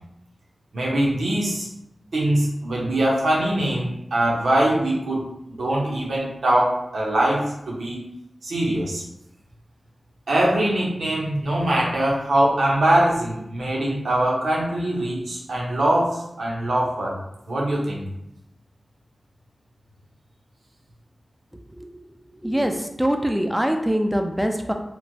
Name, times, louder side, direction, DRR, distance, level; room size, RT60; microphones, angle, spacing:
voice 1, 0.7-1.7 2.1-8.0 8.4-9.0 10.3-17.1 17.5-18.0, right 1 dB, 90° right, -4 dB, 0.7 m, -22 dB
voice 2, 22.4-24.7, equal, 5° right, 4 dB, 0.3 m, -23 dB
3.0 x 2.1 x 2.7 m, 0.82 s
cardioid pair, 50°, 0 cm